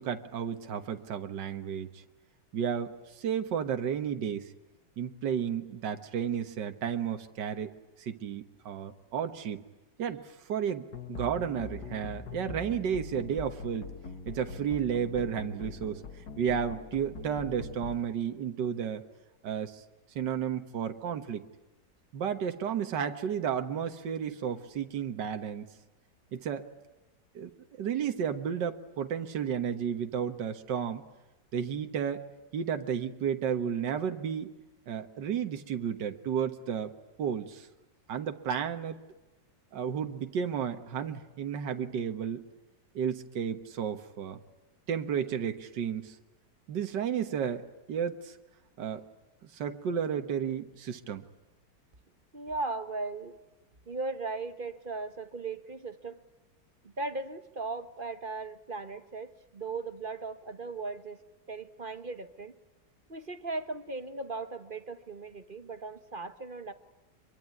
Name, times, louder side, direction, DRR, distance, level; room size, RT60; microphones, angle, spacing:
voice 1, 0.0-2.0 2.5-4.5 5.0-7.7 8.0-9.6 10.0-13.9 14.3-19.0 19.4-19.8 20.2-21.4 22.1-25.7 26.3-26.7 27.4-27.5 27.8-31.0 31.5-32.2 32.5-34.5 34.9-36.9 37.2-37.7 38.1-39.0 39.7-42.4 43.0-44.4 44.9-46.2 46.7-48.4 48.8-49.0 49.4-51.3, right 8 dB, 75° right, 7 dB, 1.9 m, -32 dB
sound 1, 10.9-17.9, left 4 dB, 60° left, 2.1 m, -42 dB
voice 2, 52.3-53.4 53.9-56.2 56.8-61.2 61.5-62.5 63.1-66.7, right 3 dB, 35° right, 10 dB, 1.2 m, -37 dB
25.5 x 23.5 x 9.6 m, 1.1 s
omnidirectional pair, 1.9 m